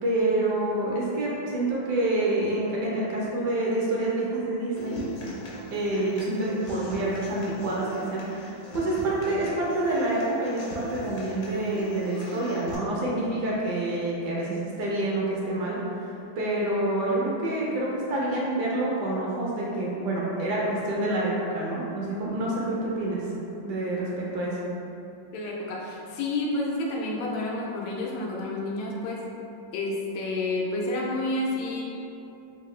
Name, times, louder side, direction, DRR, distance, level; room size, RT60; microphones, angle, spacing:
voice 1, 0.0-5.0 5.7-15.8 16.4-23.2 23.6-24.6, right 2 dB, 70° right, -5 dB, 1.1 m, -27 dB
Human voice / Acoustic guitar, 4.8-12.7, equal, 65° left, 1.1 m, -40 dB
voice 2, 25.3-29.2 29.7-31.8, left 2 dB, 85° left, -3 dB, 1.4 m, -29 dB
3.6 x 2.5 x 3.1 m, 2.7 s
omnidirectional pair, 2.1 m